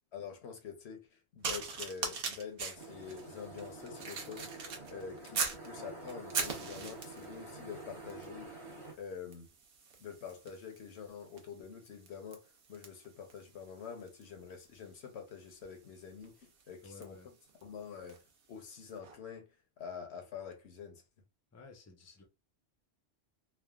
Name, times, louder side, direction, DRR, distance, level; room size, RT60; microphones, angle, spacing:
voice 1, 0.1-4.6 4.9-8.5 9.0-9.5 10.0-17.2 17.6-18.2 18.5-19.5 19.8-21.0, left 6 dB, 70° left, 1.0 m, -46 dB
sound 1, 1.4-5.7 6.1-7.3 8.1-8.3 8.6-18.3 19.0-19.2, right 5 dB, 60° right, 0.8 m, -42 dB
sound 2, 2.7-8.9, right 2 dB, 30° right, 0.8 m, -48 dB
voice 2, 16.8-17.3 21.5-22.2, left 3 dB, 20° left, 0.5 m, -54 dB
3.3 x 2.1 x 2.3 m
omnidirectional pair, 1.1 m